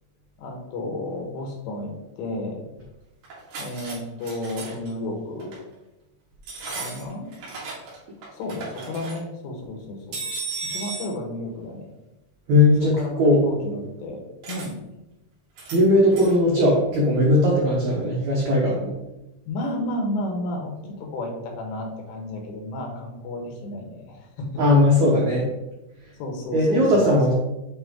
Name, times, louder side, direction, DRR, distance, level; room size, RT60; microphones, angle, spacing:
voice 1, 0.4-2.7 3.6-5.5 6.7-7.3 8.3-10.2 10.6-11.9 13.0-14.2 14.5-14.8 19.5-24.6 26.2-27.3, left 1 dB, 85° left, 1 dB, 3.4 m, -32 dB
sound 1, 3.2-4.0 4.2-4.9 5.4-5.6 6.4-8.0 8.2-9.2 10.1-11.1 14.4-14.7 15.6-15.8 16.1-16.4, right 4 dB, 60° right, 3.5 m, -35 dB
voice 2, 12.5-13.4 15.7-19.0 24.6-25.5 26.5-27.3, left 1 dB, 80° right, -3 dB, 1.6 m, -18 dB
8.7 x 3.3 x 3.6 m, 0.96 s
omnidirectional pair, 4.8 m